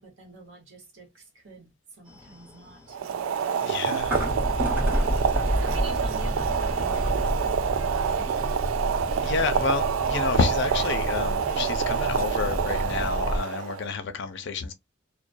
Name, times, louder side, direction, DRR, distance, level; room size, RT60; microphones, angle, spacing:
voice 1, 0.0-1.7 2.0-3.8 4.7-8.5 8.8-9.3 11.5-11.6, right 2 dB, 65° right, 1.0 m, -46 dB
sound 1, 2.1-13.4, equal, 10° right, 0.9 m, -30 dB
Boiling, 2.9-13.9, right 7 dB, 85° right, 0.3 m, -27 dB
voice 2, 3.6-4.3 9.2-14.7, left 5 dB, 60° left, 0.5 m, -29 dB
2.2 x 2.2 x 2.5 m
head